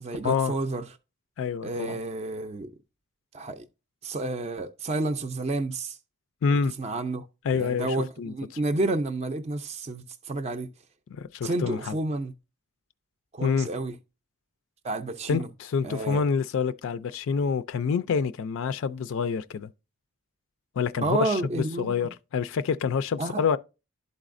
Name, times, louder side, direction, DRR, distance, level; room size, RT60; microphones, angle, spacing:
voice 1, 0.0-0.9 1.6-2.7 3.3-3.6 4.0-6.0 6.5-7.3 7.5-10.7 11.4-12.3 13.3-14.0 14.8-15.5 15.8-16.2 21.0-22.1 23.2-23.4, right 2 dB, 30° right, 0.4 m, -30 dB
voice 2, 1.4-2.0 6.4-6.7 7.5-7.9 8.2-8.3 11.1-12.0 13.4-13.7 15.3-19.7 20.8-23.6, left 6 dB, 65° left, 0.4 m, -27 dB
11.5 x 4.1 x 2.5 m
head